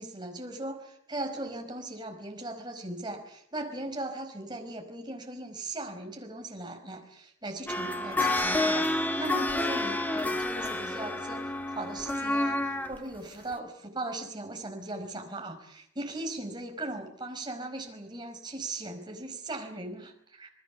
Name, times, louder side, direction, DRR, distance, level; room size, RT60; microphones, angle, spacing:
voice 1, 0.0-20.5, right 2 dB, 20° right, 3 dB, 4.9 m, -38 dB
sound 1, 7.7-13.0 13.5-13.6, left 2 dB, 10° left, 1.3 m, -29 dB
27.5 x 20.5 x 7.1 m, 0.74 s
head